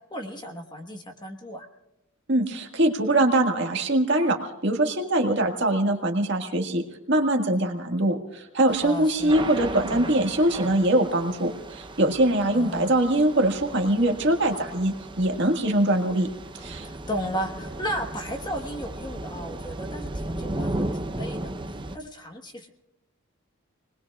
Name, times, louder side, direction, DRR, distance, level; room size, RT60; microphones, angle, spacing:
voice 1, 0.1-1.7 8.8-9.3 12.5-12.9 16.6-20.7 21.1-21.5 21.9-22.7, equal, 20° left, 4 dB, 1.3 m, -34 dB
voice 2, 2.3-16.3 16.6-16.9, right 1 dB, 55° right, 3 dB, 1.8 m, -23 dB
Thunder / Rain, 8.7-22.0, right 1 dB, 20° right, 0.7 m, -35 dB
29.0 x 20.5 x 2.4 m, 0.95 s
head